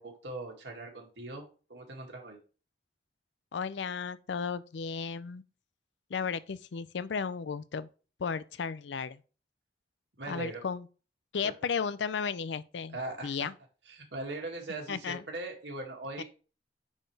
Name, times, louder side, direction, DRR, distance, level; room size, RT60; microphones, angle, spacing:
voice 1, 0.0-1.4 1.7-2.4 10.2-10.6 11.4-11.5 12.9-13.5 13.9-16.2, right 2 dB, 80° right, 2.2 m, -40 dB
voice 2, 3.5-5.4 6.1-7.9 8.2-9.2 10.3-10.9 11.3-13.0 13.2-13.5 14.9-15.2 16.2-16.3, left 6 dB, 80° left, 0.5 m, -34 dB
9.6 x 4.4 x 3.3 m
head